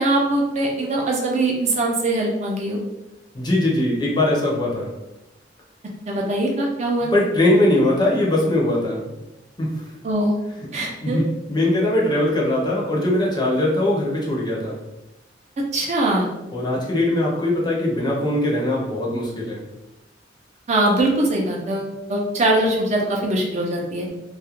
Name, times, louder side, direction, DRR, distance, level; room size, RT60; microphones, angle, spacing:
voice 1, 0.0-2.8 6.1-7.1 10.0-10.3 10.7-11.2 15.7-16.3 20.7-24.1, right 1 dB, 40° right, -1 dB, 0.4 m, -22 dB
voice 2, 3.3-4.9 7.0-9.2 9.6-9.9 10.6-14.8 16.5-19.7, left 1 dB, 25° left, -3 dB, 0.5 m, -21 dB
2.3 x 2.1 x 2.9 m, 0.95 s
head